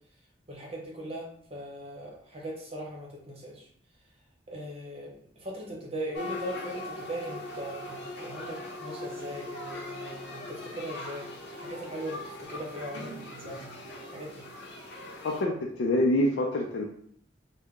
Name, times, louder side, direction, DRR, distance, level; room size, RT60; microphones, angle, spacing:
voice 1, 0.5-3.6 4.5-5.1 5.4-13.7 14.1-14.5, right 1 dB, 30° right, -2 dB, 0.8 m, -39 dB
sound 1, 6.1-15.4, left 1 dB, 55° left, 0.8 m, -40 dB
voice 2, 15.2-16.8, left 1 dB, 70° left, -1 dB, 0.4 m, -26 dB
3.4 x 2.0 x 3.6 m, 0.66 s
head